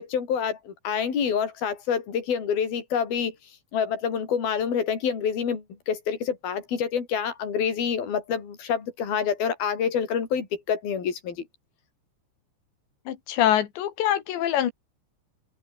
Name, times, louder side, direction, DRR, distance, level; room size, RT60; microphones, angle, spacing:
voice 1, 0.0-3.3 3.7-11.4, left 7 dB, 55° left, 6.2 m, -27 dB
voice 2, 13.1-14.7, left 11 dB, 75° left, 4.4 m, -24 dB
open air
omnidirectional pair, 5.2 m